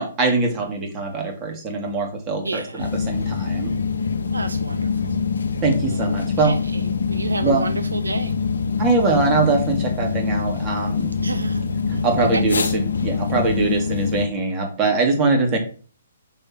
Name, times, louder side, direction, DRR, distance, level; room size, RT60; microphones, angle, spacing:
voice 1, 0.0-3.7 5.6-6.5 7.4-7.7 8.8-11.1 11.9-15.6, right 3 dB, 25° right, 2 dB, 1.8 m, -22 dB
voice 2, 2.4-2.9 4.3-5.2 5.9-8.3 11.2-11.7 11.9-12.4, right 3 dB, 75° right, 8 dB, 0.6 m, -30 dB
sound 1, 2.8-14.3, left 5 dB, 65° left, 0.6 m, -24 dB
5.6 x 3.5 x 5.7 m, 0.39 s
figure-of-eight pair, 125°, 0 cm